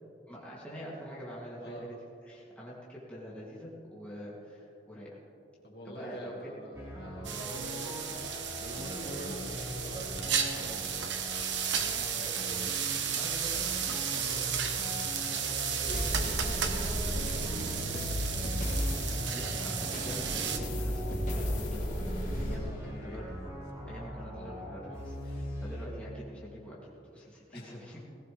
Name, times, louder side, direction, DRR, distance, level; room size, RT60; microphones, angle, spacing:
voice 1, 0.3-2.0 2.2-5.1 5.8-6.5 13.1-13.5 13.8-14.0 19.3-21.9 22.4-23.3 23.9-28.0, equal, 5° left, -8 dB, 3.0 m, -45 dB
voice 2, 5.6-8.2 8.6-11.1 11.7-12.6 13.5-13.7 14.1-18.7 22.6-23.2 27.5-27.7, equal, 60° left, -2 dB, 2.4 m, -46 dB
sound 1, 6.7-25.9, equal, 15° right, 4.4 m, -42 dB
sound 2, 7.2-20.6, right 7 dB, 85° right, 1.2 m, -34 dB
sound 3, 15.8-22.6, equal, 40° left, 3.3 m, -34 dB
19.5 x 17.5 x 3.6 m, 2.9 s
head